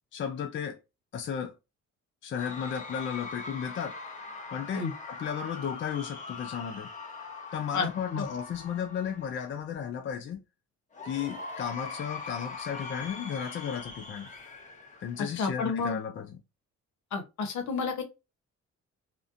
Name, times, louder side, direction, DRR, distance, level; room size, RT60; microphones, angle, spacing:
voice 1, 0.1-0.8 1.1-1.5 2.2-3.9 4.5-6.9 7.5-10.4 11.0-14.3 15.0-16.4, left 8 dB, 40° left, 0.4 m, -34 dB
Cheering / Crowd, 2.3-9.6 10.9-15.7, left 4 dB, 25° left, 0.8 m, -42 dB
voice 2, 7.7-8.2 15.4-16.0 17.1-18.0, left 4 dB, 70° left, 0.8 m, -31 dB
2.4 x 2.2 x 2.4 m
cardioid pair, 90°, 30 cm